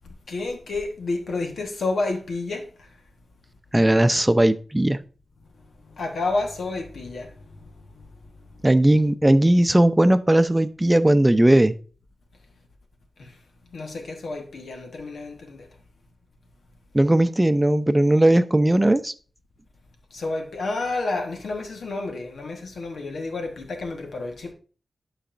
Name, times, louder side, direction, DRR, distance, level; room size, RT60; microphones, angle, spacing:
voice 1, 0.0-3.0 5.5-8.6 13.2-13.4 13.7-15.7 20.1-24.5, left 3 dB, 85° left, 1.3 m, -31 dB
voice 2, 3.7-5.0 8.6-11.8 16.9-19.1, right 1 dB, 20° right, 0.6 m, -18 dB
11.5 x 4.1 x 2.6 m
cardioid pair, 45°, 0 cm